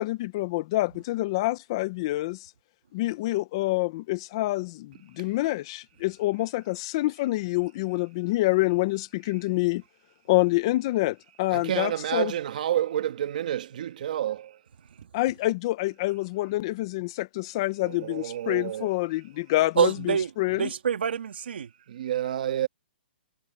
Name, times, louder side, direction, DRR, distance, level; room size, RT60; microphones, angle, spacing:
voice 1, 0.0-2.5 2.9-9.8 10.3-12.3 15.1-20.7, left 19 dB, 25° left, 0.6 m, -27 dB
voice 2, 11.5-14.6 17.8-18.9 21.9-22.7, right 11 dB, 45° right, 1.4 m, -29 dB
voice 3, 19.8-21.7, right 7 dB, 70° right, 2.4 m, -26 dB
hypercardioid pair, 170°, 6 cm